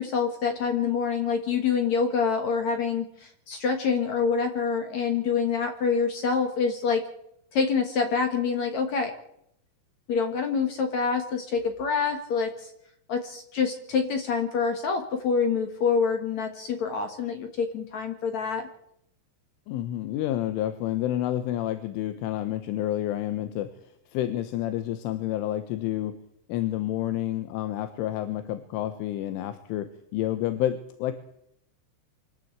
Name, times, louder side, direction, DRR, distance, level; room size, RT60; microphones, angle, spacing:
voice 1, 0.0-7.0 7.5-9.1 10.1-12.7 13.1-18.6, left 5 dB, 55° left, 5 dB, 2.0 m, -26 dB
voice 2, 19.7-23.7 24.1-26.2 26.5-31.1, left 13 dB, 85° left, 9 dB, 3.6 m, -29 dB
26.0 x 12.5 x 8.1 m, 0.75 s
omnidirectional pair, 5.5 m